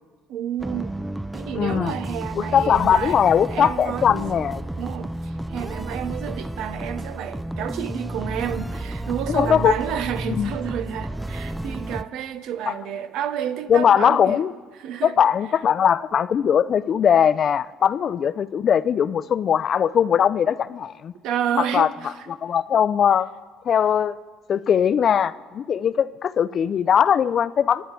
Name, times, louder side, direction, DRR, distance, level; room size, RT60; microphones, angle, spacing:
voice 1, 0.3-1.0 1.3-3.2 3.5-4.4 4.8-14.4 14.8-15.2 21.2-22.3, right 9 dB, 75° right, 0.8 m, -30 dB
sound 1, 0.6-12.0, right 1 dB, 5° right, 0.4 m, -32 dB
voice 2, 1.5-2.0 2.4-4.6 9.3-9.7 10.3-10.5 12.7-12.8 13.7-14.5 15.0-21.1 21.6-21.9 22.3-23.3 23.7-24.2 24.5-27.8, left 8 dB, 50° left, 0.5 m, -20 dB
24.5 x 10.0 x 4.5 m
supercardioid pair, 90°, 0 cm